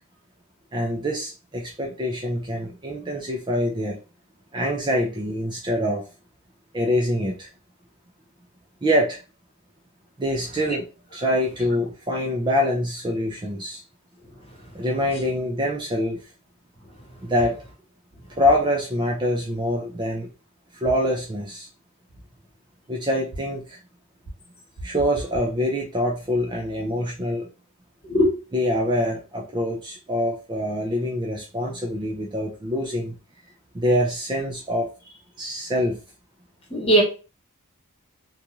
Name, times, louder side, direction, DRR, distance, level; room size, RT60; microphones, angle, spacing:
voice 1, 0.7-4.0 4.5-6.1 6.7-7.5 8.8-9.2 10.2-10.9 11.1-13.8 14.7-16.2 17.2-17.6 18.4-20.3 20.7-21.7 22.9-23.8 24.8-27.5 28.5-33.2 33.7-36.0, equal, 20° right, 0.4 m, -25 dB
voice 2, 36.7-37.0, equal, 25° left, 1.2 m, -18 dB
2.6 x 2.3 x 2.9 m
head